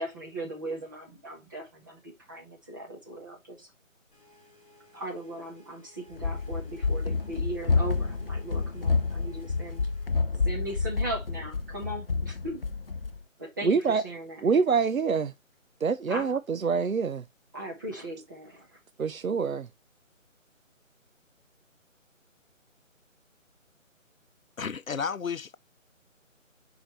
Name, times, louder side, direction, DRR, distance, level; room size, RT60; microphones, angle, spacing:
voice 1, 0.0-3.7 4.9-9.9 10.4-12.6 13.4-14.4 16.1-16.3 17.5-18.8, right 1 dB, 15° right, 1.2 m, -38 dB
sound 1, 4.1-10.3, left 2 dB, 25° left, 2.6 m, -59 dB
Run, 6.1-13.2, left 4 dB, 45° left, 0.5 m, -29 dB
voice 2, 13.6-14.0 14.4-15.3 15.8-17.2 19.0-19.7, right 5 dB, 85° right, 0.7 m, -25 dB
voice 3, 24.6-25.6, left 6 dB, 85° left, 0.7 m, -32 dB
7.8 x 5.0 x 3.1 m
figure-of-eight pair, 155°, 40 cm